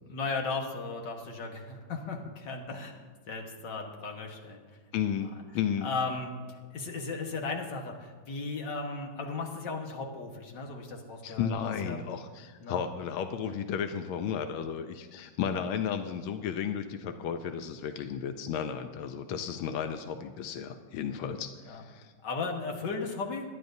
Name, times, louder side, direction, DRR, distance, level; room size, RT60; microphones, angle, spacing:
voice 1, 0.1-3.0 3.3-4.6 5.8-12.0 12.6-12.8 15.4-15.6 21.7-21.8 22.2-23.4, left 4 dB, 60° left, 2 dB, 2.0 m, -36 dB
voice 2, 4.9-5.3 5.5-5.9 11.2-22.1, left 8 dB, 90° left, 8 dB, 1.5 m, -33 dB
23.0 x 11.0 x 2.7 m, 1.5 s
omnidirectional pair, 2.2 m